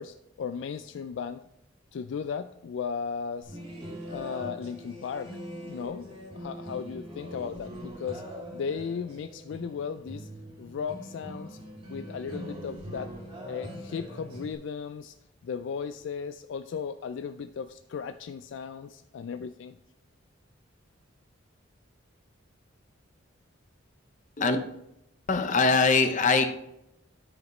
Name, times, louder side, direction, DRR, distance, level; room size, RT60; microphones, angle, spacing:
voice 1, 0.0-1.4 1.9-3.6 4.0-8.2 8.5-10.3 10.6-11.6 11.9-13.1 13.4-15.1 15.4-19.8, left 6 dB, 65° left, 0.3 m, -36 dB
sound 1, 3.4-14.5, equal, 30° right, 2.0 m, -42 dB
voice 2, 25.3-26.5, left 4 dB, 40° left, 0.7 m, -22 dB
12.5 x 4.9 x 3.1 m
head